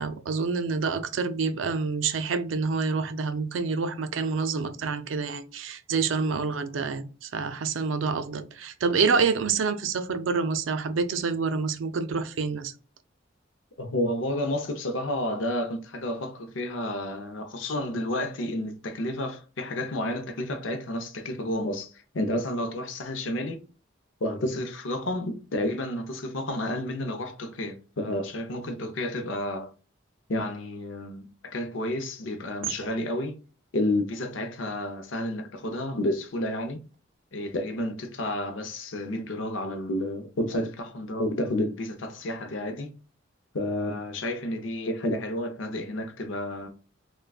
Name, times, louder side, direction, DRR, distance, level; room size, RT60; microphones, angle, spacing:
voice 1, 0.0-12.7 32.8-32.9, right 4 dB, 85° right, 0.4 m, -27 dB
voice 2, 13.8-23.6 24.2-29.7 30.3-33.4 33.7-36.8 37.3-42.9 43.5-46.7, left 1 dB, 80° left, 0.6 m, -30 dB
3.5 x 2.2 x 2.3 m
head